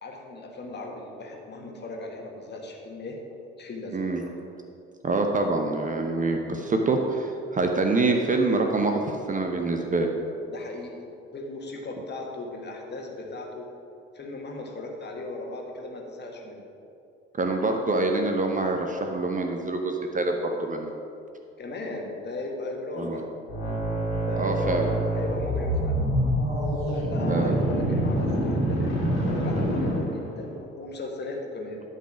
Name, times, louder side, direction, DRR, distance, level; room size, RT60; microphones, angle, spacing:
voice 1, 0.0-3.2 3.5-4.1 10.5-11.0 11.3-13.7 14.1-16.7 21.6-23.2 24.3-25.9 26.9-31.8, left 2 dB, 35° left, 0 dB, 1.6 m, -37 dB
voice 2, 3.9-4.2 5.0-10.1 17.4-20.9 23.0-23.2 24.4-24.9 27.3-27.6, right 3 dB, 25° right, 3 dB, 0.8 m, -25 dB
sound 1, 23.5-30.4, right 1 dB, 80° left, 2.1 m, -26 dB
11.5 x 4.1 x 6.1 m, 2.7 s
figure-of-eight pair, 45°, 31 cm